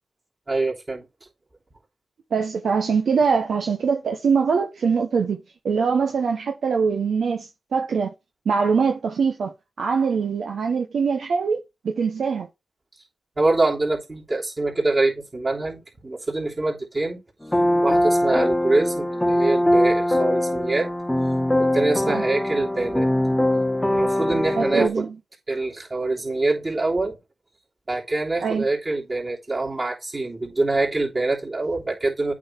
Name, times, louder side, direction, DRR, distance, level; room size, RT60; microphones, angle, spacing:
voice 1, 0.5-1.0 13.4-17.2 17.8-20.9 21.6-23.1 23.9-25.1 25.5-27.2 27.9-32.3, right 2 dB, 40° right, 3.1 m, -24 dB
voice 2, 2.3-8.1 8.5-9.5 9.8-12.5 22.1-22.2 24.6-25.1 28.4-28.7, right 5 dB, 75° right, 0.8 m, -23 dB
sound 1, 17.4-24.9, left 1 dB, 10° left, 0.7 m, -22 dB
8.5 x 3.8 x 4.4 m
supercardioid pair, 40°, 0 cm